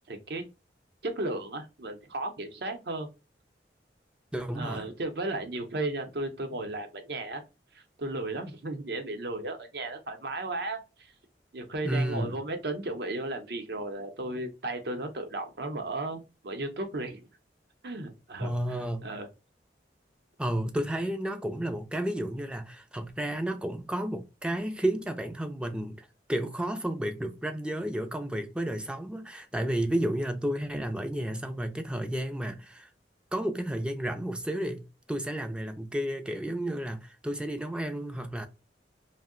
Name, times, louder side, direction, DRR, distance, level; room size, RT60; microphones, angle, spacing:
voice 1, 0.1-0.4 1.0-3.1 4.5-7.4 7.7-11.1 11.5-17.2 17.8-18.5 19.0-19.3, right 2 dB, 65° right, 0.7 m, -35 dB
voice 2, 4.3-4.9 11.8-12.4 18.4-19.1 20.4-32.9 33.3-38.5, right 1 dB, 5° right, 0.3 m, -32 dB
2.7 x 2.0 x 3.7 m
head